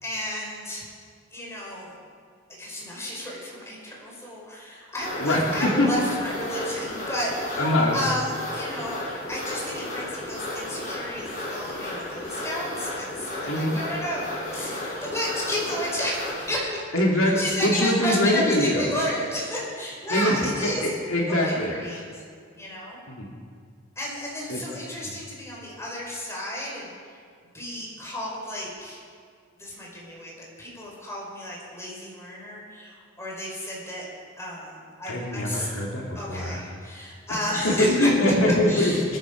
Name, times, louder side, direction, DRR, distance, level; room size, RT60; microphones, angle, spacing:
voice 1, 0.0-0.8 1.3-1.9 2.6-9.0 9.3-16.8 17.4-20.9 21.3-22.2 22.6-23.0 24.0-26.9 27.5-29.0 29.6-34.1 34.4-35.7 36.2-39.0, equal, 15° left, -4 dB, 5.1 m, -32 dB
sound 1, 5.0-16.5, left 1 dB, 45° left, 4.4 m, -34 dB
voice 2, 5.2-5.9 7.6-8.0 13.5-13.8 16.9-19.0 20.1-22.0 23.1-23.3 24.5-24.6 35.1-36.6 37.6-38.9, left 1 dB, 80° left, -2 dB, 2.6 m, -23 dB
24.0 x 10.5 x 5.2 m, 2.2 s
head